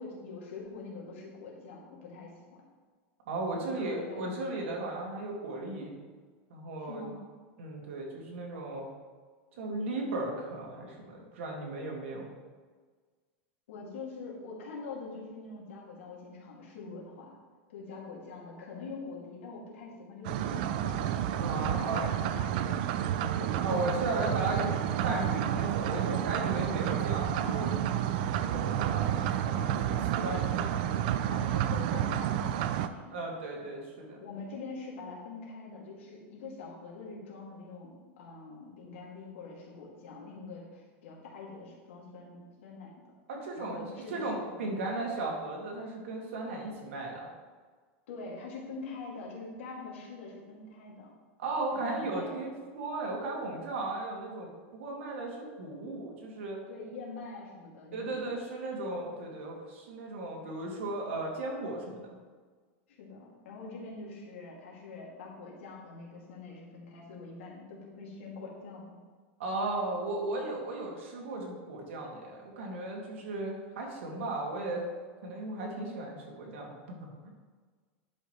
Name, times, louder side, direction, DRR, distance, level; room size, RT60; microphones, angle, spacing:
voice 1, 0.0-2.6 3.5-4.3 6.8-7.2 13.7-17.4 17.7-23.8 24.1-24.2 24.6-24.8 26.6-26.8 31.3-33.2 34.2-42.9 43.5-44.9 48.1-51.1 51.7-52.3 53.4-53.6 56.7-58.5 62.9-68.9, left 3 dB, 85° left, -3 dB, 2.5 m, -44 dB
voice 2, 3.3-5.9 6.5-7.0 7.6-8.9 9.5-12.3 21.4-22.1 23.6-27.7 28.3-29.2 29.4-31.0 31.3-31.4 33.1-34.2 43.3-43.8 44.1-47.3 51.4-56.6 57.9-62.2 69.4-74.8 75.2-77.3, right 2 dB, 80° right, -1 dB, 2.3 m, -36 dB
sound 1, 20.2-32.9, right 10 dB, 45° right, 0.4 m, -30 dB
11.0 x 5.5 x 3.2 m, 1.5 s
supercardioid pair, 180°, 7 cm